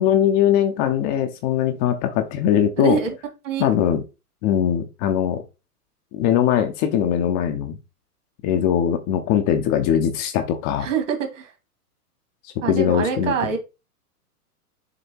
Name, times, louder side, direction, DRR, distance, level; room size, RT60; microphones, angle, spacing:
voice 1, 0.0-3.0 3.6-4.0 4.4-5.4 6.1-7.8 8.4-10.9 12.4-13.3, left 9 dB, 30° left, 6 dB, 0.9 m, -21 dB
voice 2, 2.8-3.1 3.4-3.7 10.8-11.5 12.6-13.6, right 7 dB, 50° right, 5 dB, 2.4 m, -25 dB
6.8 x 3.4 x 4.6 m, 0.27 s
figure-of-eight pair, 110°, 46 cm